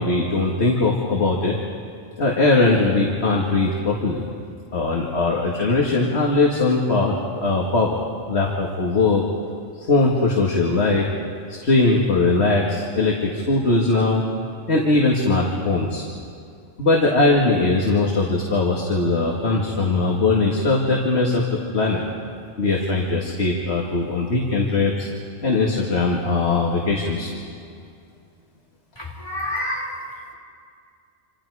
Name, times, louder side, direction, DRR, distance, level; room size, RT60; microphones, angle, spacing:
voice 1, 0.0-1.6 2.2-4.2 4.7-8.0 8.3-9.2 9.8-11.1 11.5-14.2 14.7-16.0 16.8-22.0 22.6-25.1 25.4-27.3, left 3 dB, 60° left, -1 dB, 2.3 m, -20 dB
voice 2, 29.0-30.3, left 1 dB, 20° left, -2 dB, 4.2 m, -29 dB
27.5 x 27.5 x 4.9 m, 2.4 s
omnidirectional pair, 1.3 m